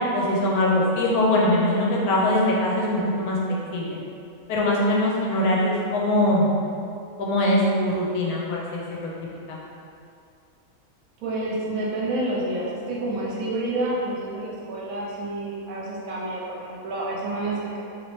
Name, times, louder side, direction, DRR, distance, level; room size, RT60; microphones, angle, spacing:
voice 1, 0.1-4.0 4.5-6.5 7.2-9.1 9.5-9.6, left 1 dB, 85° left, -3 dB, 1.1 m, -22 dB
voice 2, 11.2-17.8, right 2 dB, 70° right, -5 dB, 1.1 m, -29 dB
3.0 x 2.8 x 3.1 m, 2.5 s
omnidirectional pair, 1.6 m